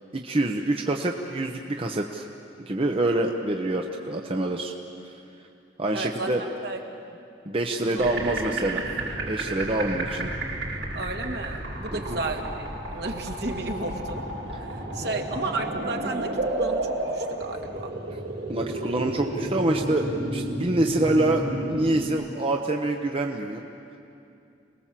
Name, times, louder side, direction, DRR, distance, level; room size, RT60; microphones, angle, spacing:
voice 1, 0.1-2.2 2.7-4.7 5.8-6.4 7.5-8.8 9.3-10.3 11.9-12.2 15.0-15.2 18.5-20.1 20.3-23.6, right 2 dB, 30° right, 2 dB, 0.9 m, -26 dB
voice 2, 5.9-6.8 7.8-8.1 9.7-9.9 10.9-14.3 14.5-17.9, right 2 dB, 60° right, 2 dB, 2.1 m, -33 dB
sound 1, 8.0-22.1, right 1 dB, 85° right, 4.3 m, -32 dB
27.5 x 20.0 x 7.6 m, 2.6 s
head